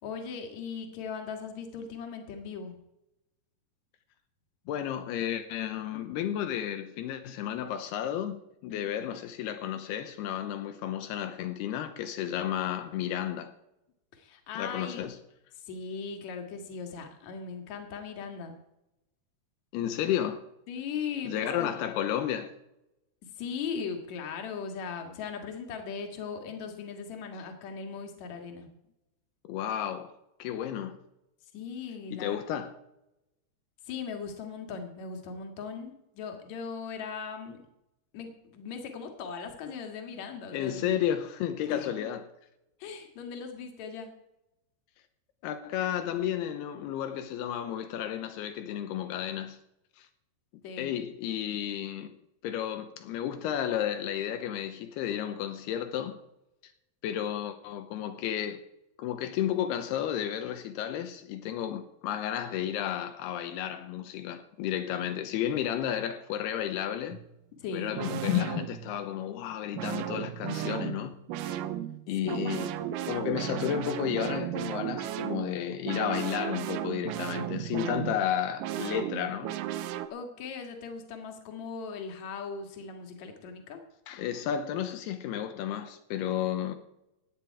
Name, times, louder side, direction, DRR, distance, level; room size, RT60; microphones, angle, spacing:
voice 1, 0.0-2.8 8.7-8.9 14.1-15.0 15.5-18.6 20.7-21.8 23.2-28.7 31.4-32.4 33.8-37.6 38.1-41.0 41.7-41.9 42.8-44.1 50.6-50.9 67.6-67.9 72.2-72.5 80.1-83.8, left 5 dB, 50° left, 2.7 m, -39 dB
voice 2, 4.7-13.5 14.6-15.1 19.7-20.4 21.3-22.5 29.4-30.1 30.4-31.0 32.1-32.7 40.5-42.2 45.4-49.6 50.0-50.1 50.8-52.1 52.4-56.2 57.0-58.6 59.0-67.2 67.7-71.1 71.4-71.6 72.1-72.7 73.0-79.5 84.1-86.8, left 10 dB, 80° left, 2.9 m, -32 dB
sound 1, 67.1-67.3 68.0-69.1 69.8-80.1, right 12 dB, 80° right, 1.9 m, -35 dB
17.0 x 10.0 x 4.7 m
omnidirectional pair, 4.7 m